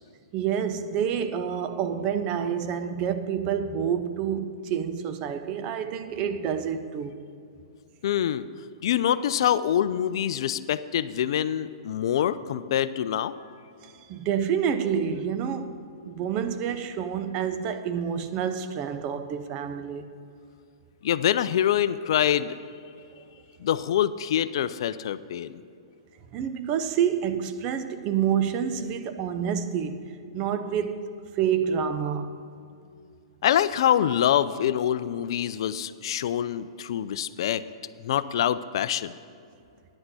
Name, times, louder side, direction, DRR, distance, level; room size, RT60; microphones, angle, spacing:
voice 1, 0.3-7.2 13.8-20.1 26.3-31.1 31.3-32.3, right 8 dB, 35° right, 0.7 m, -28 dB
voice 2, 8.0-8.4 8.8-13.3 21.0-22.6 23.6-25.6 33.4-37.6 38.0-39.1, left 10 dB, 65° left, 0.4 m, -25 dB
9.8 x 5.9 x 7.8 m
hypercardioid pair, 125°, 3 cm